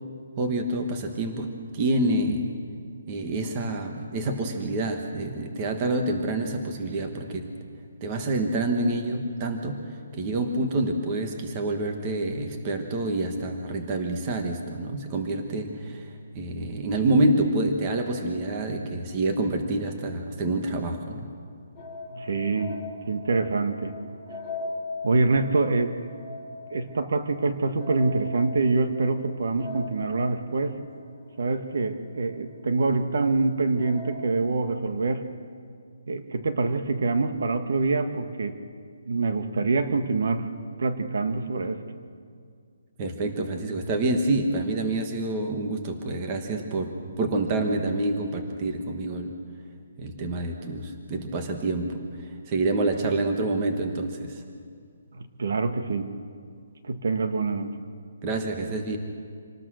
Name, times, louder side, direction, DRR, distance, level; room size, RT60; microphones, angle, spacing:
voice 1, 0.4-2.5 3.1-7.5 8.0-16.1 16.3-21.3 43.0-49.3 50.0-54.4 58.2-59.0, right 2 dB, 20° right, 4 dB, 1.5 m, -27 dB
sound 1, 21.8-32.6 33.0-33.1 33.8-34.2, left 2 dB, 5° left, 3.4 m, -40 dB
voice 2, 22.1-22.8 23.1-23.9 25.0-26.0 26.7-30.8 31.4-35.3 36.1-38.6 39.1-40.5 40.8-41.8 55.1-56.1 56.8-57.7, right 3 dB, 60° right, 8 dB, 1.6 m, -25 dB
27.0 x 19.5 x 6.4 m, 2.2 s
hypercardioid pair, 175°, 0 cm